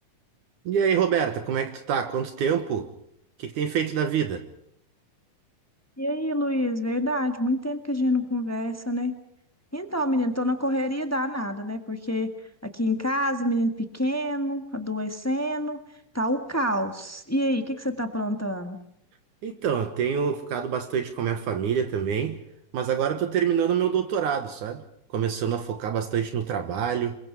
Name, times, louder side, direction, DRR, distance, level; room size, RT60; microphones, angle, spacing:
voice 1, 0.7-2.9 3.4-4.4 19.4-22.4 22.7-24.8 25.1-27.2, right 8 dB, 70° right, 2.7 m, -26 dB
voice 2, 6.0-9.1 9.7-12.3 12.6-15.8 16.1-18.8, equal, 20° left, 0.4 m, -27 dB
27.5 x 23.0 x 4.7 m
omnidirectional pair, 3.8 m